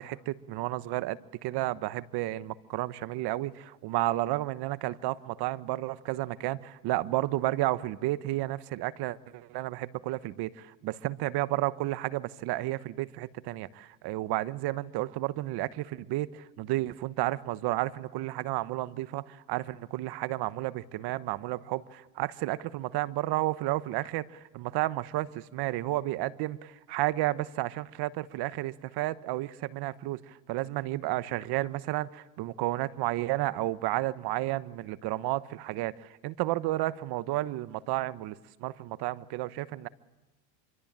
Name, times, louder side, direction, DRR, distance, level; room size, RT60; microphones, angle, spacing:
voice 1, 0.0-39.9, right 16 dB, 55° right, 15 dB, 1.2 m, -32 dB
26.5 x 24.0 x 8.9 m, 1.1 s
supercardioid pair, 110°, 48 cm